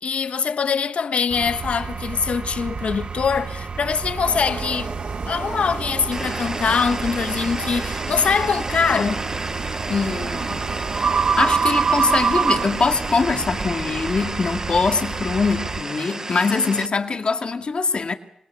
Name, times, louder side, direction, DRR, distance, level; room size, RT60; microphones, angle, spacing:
voice 1, 0.0-4.9 5.3-9.2, left 6 dB, 75° left, 1.3 m, -23 dB
sound 1, 1.3-15.8, right 5 dB, 50° right, 0.9 m, -27 dB
sound 2, 4.2-14.0, right 4 dB, 70° right, 4.2 m, -35 dB
sound 3, 6.1-16.9, right 2 dB, 25° right, 1.0 m, -32 dB
voice 2, 9.9-10.7 11.4-18.1, left 4 dB, 55° left, 2.3 m, -23 dB
26.5 x 21.5 x 6.9 m
wide cardioid pair, 115°, 2 cm